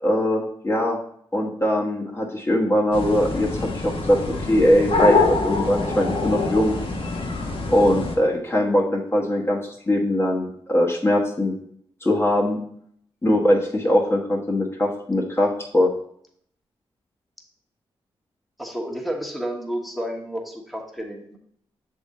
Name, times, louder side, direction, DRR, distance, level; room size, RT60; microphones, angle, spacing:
voice 1, 0.0-1.0 1.3-6.7 7.7-11.5 12.0-12.6 13.2-15.9, left 1 dB, 25° left, -2 dB, 1.2 m, -21 dB
sound 1, 2.9-8.1, left 3 dB, 60° left, 1.1 m, -25 dB
voice 2, 18.6-21.4, equal, ahead, 1 dB, 1.3 m, -31 dB
6.2 x 3.8 x 4.2 m, 0.67 s
cardioid pair, 50°, 10 cm